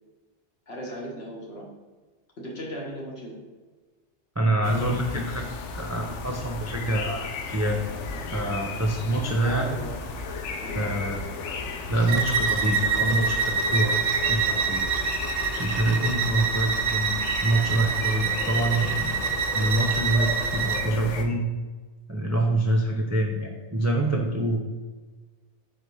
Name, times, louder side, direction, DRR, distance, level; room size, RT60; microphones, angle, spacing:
voice 1, 0.7-1.7 2.4-3.4 9.4-10.0 10.6-10.8, equal, 60° left, -2 dB, 1.7 m, -36 dB
voice 2, 4.4-5.5 5.7-7.8 8.3-9.8 10.7-11.6 11.9-14.9 15.6-17.1 17.4-19.2 19.5-21.5 22.1-24.6, right 1 dB, 25° right, 1 dB, 0.4 m, -26 dB
sound 1, 4.6-21.2, left 3 dB, 80° left, 1.0 m, -35 dB
Bowed string instrument, 12.1-20.9, right 6 dB, 60° right, 0.7 m, -26 dB
4.8 x 4.0 x 5.4 m, 1.3 s
omnidirectional pair, 1.2 m